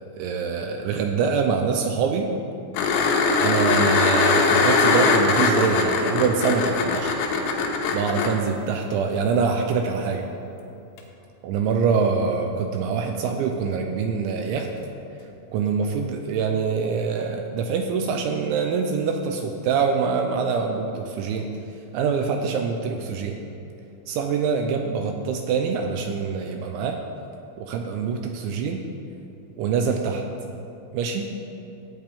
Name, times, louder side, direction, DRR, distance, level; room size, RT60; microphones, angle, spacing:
voice 1, 0.2-2.3 3.4-7.1 7.9-10.3 11.4-14.7 15.5-21.5 21.9-23.4 24.1-27.0 27.6-28.8 29.6-30.2 30.9-31.3, right 5 dB, 80° right, 4 dB, 2.7 m, -24 dB
sound 1, 2.8-8.3 11.0-11.1, left 4 dB, 90° left, 3.8 m, -21 dB
15.5 x 9.2 x 3.6 m, 2.8 s
omnidirectional pair, 5.8 m